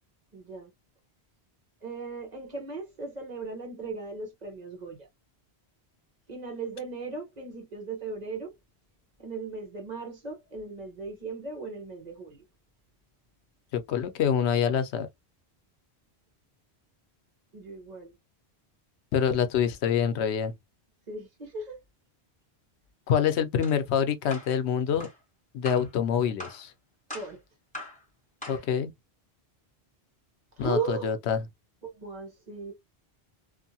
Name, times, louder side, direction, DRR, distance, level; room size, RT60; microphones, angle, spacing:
voice 1, 0.3-0.7 1.8-5.0 6.3-8.5 9.2-12.4 17.5-18.1 21.1-21.8 27.1-27.4 30.6-31.2 31.8-32.7, right 4 dB, 45° right, 1.0 m, -37 dB
voice 2, 13.7-15.1 19.1-20.5 23.1-25.1 25.5-26.7 28.5-28.9 30.6-31.4, left 8 dB, 85° left, 0.8 m, -26 dB
sound 1, 23.6-23.8 24.3-24.5 25.0-25.2 25.6-25.9 26.4-26.6 27.1-27.4 27.7-28.0 28.4-28.7, left 1 dB, 5° left, 1.4 m, -41 dB
2.6 x 2.5 x 2.7 m
omnidirectional pair, 1.1 m